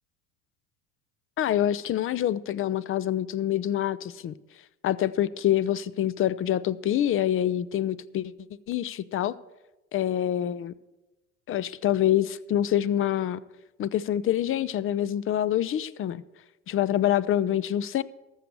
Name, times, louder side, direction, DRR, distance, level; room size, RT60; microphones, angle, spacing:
voice 1, 1.4-4.3 4.8-8.3 8.7-9.3 9.9-10.7 11.5-13.4 13.8-16.2 16.7-18.0, left 11 dB, 35° left, 0.5 m, -26 dB
13.5 x 6.4 x 6.8 m
hypercardioid pair, 75°, 39 cm